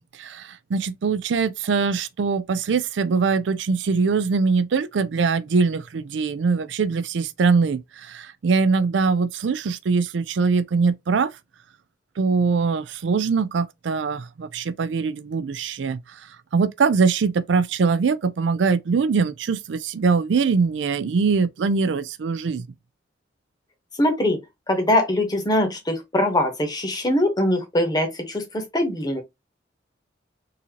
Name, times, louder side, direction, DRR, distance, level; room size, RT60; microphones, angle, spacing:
voice 1, 0.0-11.3 12.2-16.0 16.5-22.6, right 4 dB, 75° right, 0.4 m, -22 dB
voice 2, 24.0-24.4 24.7-29.2, left 1 dB, 20° left, 1.0 m, -22 dB
3.8 x 2.8 x 2.9 m
head